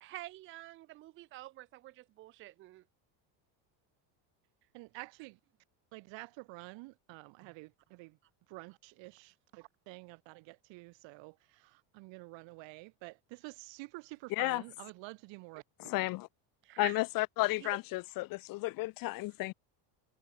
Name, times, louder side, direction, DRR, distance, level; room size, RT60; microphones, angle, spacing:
voice 1, 0.0-2.8 7.4-7.5 16.6-17.0 17.6-17.8, right 17 dB, 30° right, 0.4 m, -47 dB
voice 2, 4.7-5.4 5.9-8.2 8.5-15.9, right 24 dB, 65° right, 2.7 m, -49 dB
voice 3, 14.3-14.6 15.9-16.3 16.8-19.5, left 21 dB, 45° left, 0.6 m, -33 dB
cardioid pair, 150°, 48 cm